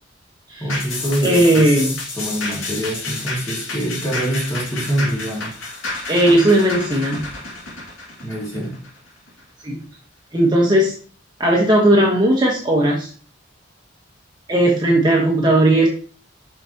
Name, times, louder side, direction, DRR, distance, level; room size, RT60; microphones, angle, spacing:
voice 1, 0.6-5.5 8.2-8.8, equal, 15° left, -4 dB, 2.2 m, -25 dB
sound 1, 0.7-9.4 9.8-9.9, left 3 dB, 90° left, 2.3 m, -30 dB
voice 2, 1.2-1.9 6.1-7.2 9.6-9.8 10.3-10.9 11.4-13.1 14.5-15.9, right 1 dB, 20° right, -3 dB, 1.2 m, -16 dB
5.9 x 5.8 x 2.9 m, 0.41 s
head